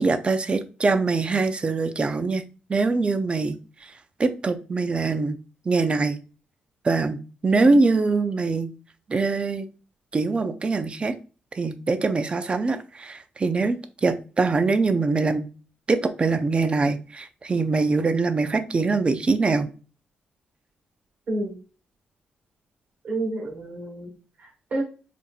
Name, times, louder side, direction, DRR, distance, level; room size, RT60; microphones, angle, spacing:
voice 1, 0.0-2.4 2.7-3.6 4.2-5.4 5.7-6.2 6.8-8.7 9.1-9.7 10.1-11.1 11.5-15.5 15.9-19.7, right 3 dB, 35° right, 9 dB, 0.5 m, -23 dB
voice 2, 21.3-21.6 23.0-24.1 24.4-24.8, right 2 dB, 55° right, -1 dB, 1.6 m, -29 dB
4.4 x 2.6 x 2.4 m, 0.35 s
cardioid pair, 80°, 3 cm